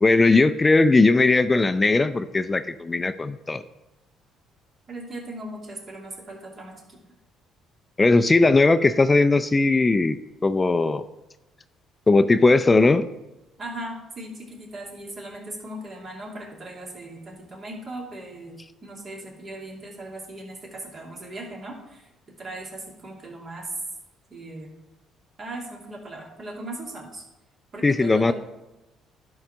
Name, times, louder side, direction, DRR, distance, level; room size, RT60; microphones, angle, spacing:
voice 1, 0.0-3.6 8.0-10.2 10.4-11.0 12.1-13.1 27.8-28.3, left 3 dB, 25° left, 12 dB, 0.5 m, -18 dB
voice 2, 4.9-7.0 13.6-22.1 22.4-23.7 24.3-24.7 25.4-27.3 27.7-28.3, right 1 dB, 45° right, -1 dB, 2.7 m, -38 dB
11.0 x 4.0 x 6.2 m, 1.0 s
supercardioid pair, 65°, 0 cm